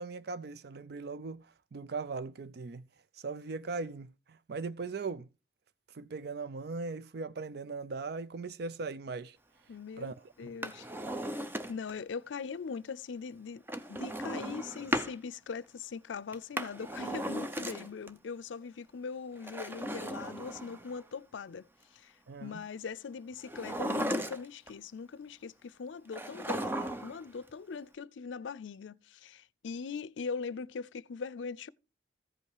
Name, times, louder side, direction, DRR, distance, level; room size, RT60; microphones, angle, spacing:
voice 1, 0.0-2.8 3.1-5.3 5.9-9.4 10.0-10.1 10.4-10.5 22.3-22.6, right 4 dB, 60° right, 0.4 m, -39 dB
voice 2, 9.7-10.9 11.3-11.4 11.7-13.6 13.9-21.7 21.9-22.1 22.4-31.7, left 5 dB, 85° left, 0.5 m, -41 dB
Drawer open or close, 10.5-12.0 13.7-15.2 16.3-18.1 19.4-21.0 23.4-24.7 26.1-27.2 27.5-27.6, equal, 10° right, 0.8 m, -36 dB
14.5 x 5.4 x 4.8 m
head